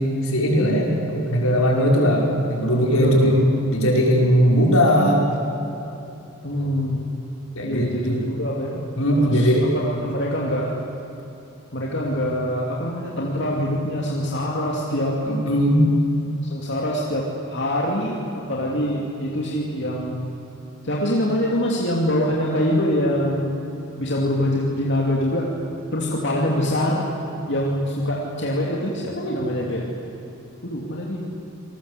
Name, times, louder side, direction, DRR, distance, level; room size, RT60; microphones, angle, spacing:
voice 1, 0.2-3.4 3.7-5.3 7.6-8.2 9.0-9.7 15.2-15.9, equal, 75° left, -1 dB, 5.4 m, -19 dB
voice 2, 2.9-3.4 6.4-7.0 7.6-8.9 9.2-10.7 11.7-15.2 16.4-17.2 17.5-20.3 20.8-23.5 24.0-25.5 25.9-27.1 27.5-29.8 30.6-31.2, equal, 55° left, -3 dB, 2.9 m, -24 dB
28.0 x 19.5 x 8.2 m, 3.0 s
head